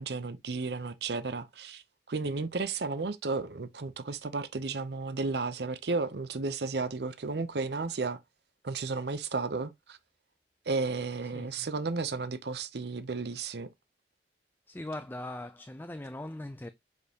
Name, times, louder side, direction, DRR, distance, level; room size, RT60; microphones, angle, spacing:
voice 1, 0.0-8.2 8.6-10.0 10.7-13.7, right 4 dB, 65° right, 0.7 m, -33 dB
voice 2, 11.3-11.7 14.7-16.7, left 1 dB, 10° left, 0.4 m, -40 dB
6.5 x 5.2 x 2.8 m
head